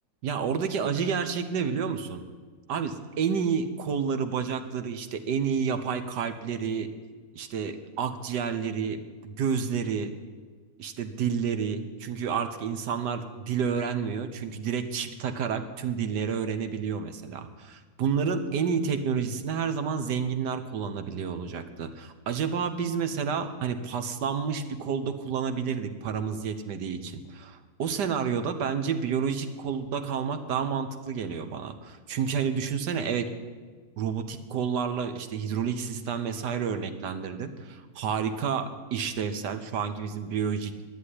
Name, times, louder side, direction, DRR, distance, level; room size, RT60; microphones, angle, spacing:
voice 1, 0.2-2.2 2.7-6.9 7.3-10.1 10.8-33.3 34.0-40.7, right 6 dB, 80° right, 9 dB, 1.5 m, -30 dB
11.0 x 9.5 x 9.8 m, 1.5 s
omnidirectional pair, 1.8 m